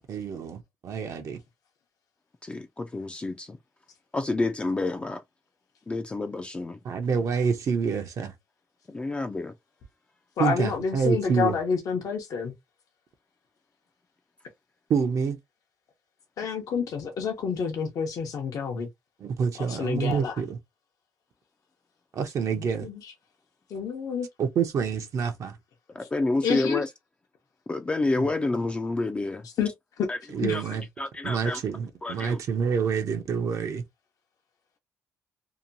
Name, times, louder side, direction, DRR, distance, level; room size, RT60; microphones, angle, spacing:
voice 1, 0.1-1.4 6.8-8.3 10.4-11.6 14.9-15.4 19.2-20.6 22.1-22.9 24.4-25.6 28.2-28.3 30.3-30.9 31.2-33.8, right 6 dB, 60° right, 0.5 m, -27 dB
voice 2, 2.4-3.6 4.1-5.2 5.9-6.8 8.9-9.5 25.9-26.9 27.7-29.5 30.1-30.2 30.5-30.6 31.0-31.6 32.0-32.4, left 2 dB, 20° left, 0.3 m, -29 dB
voice 3, 10.4-12.5 16.4-18.9 19.6-20.4 22.6-23.1 23.7-24.3 26.4-26.8 29.6-29.7 30.4-30.6, left 6 dB, 75° left, 0.7 m, -29 dB
2.8 x 2.2 x 2.6 m
cardioid pair, 125°, 6 cm